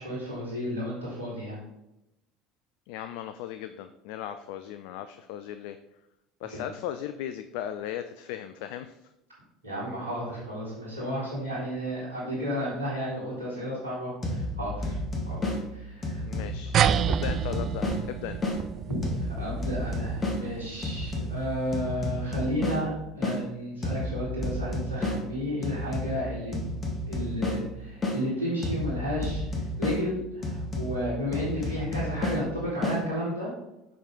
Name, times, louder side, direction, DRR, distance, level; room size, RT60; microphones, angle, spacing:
voice 1, 0.0-1.6 6.5-6.6 9.6-15.0 15.3-16.2 18.9-26.5 27.1-33.5, equal, 80° right, -10 dB, 2.7 m, -32 dB
voice 2, 2.9-5.8 6.4-9.0 16.2-16.8 17.0-18.4, left 10 dB, 60° left, 10 dB, 0.3 m, -37 dB
sound 1, 14.2-18.6 19.0-23.4 23.8-28.2 28.6-33.0, left 1 dB, 25° left, 1.7 m, -32 dB
sound 2, 16.7-21.6, right 9 dB, 40° right, 0.3 m, -29 dB
6.4 x 5.7 x 3.8 m, 0.90 s
figure-of-eight pair, 65°, 0 cm